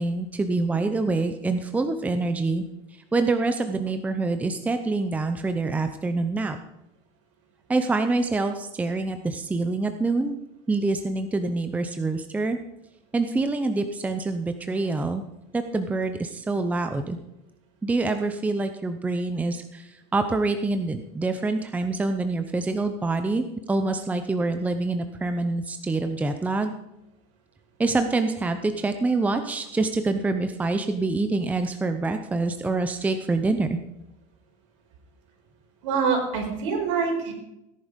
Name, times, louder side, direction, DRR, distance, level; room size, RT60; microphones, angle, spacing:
voice 1, 0.0-2.6 3.1-6.6 7.7-10.4 10.7-12.6 13.1-15.2 15.5-17.2 17.8-26.7 27.8-33.8, right 3 dB, 10° right, 8 dB, 0.7 m, -26 dB
voice 2, 35.8-37.3, right 5 dB, 80° right, 2 dB, 5.3 m, -25 dB
17.5 x 11.0 x 5.3 m, 0.90 s
supercardioid pair, 150°, 16 cm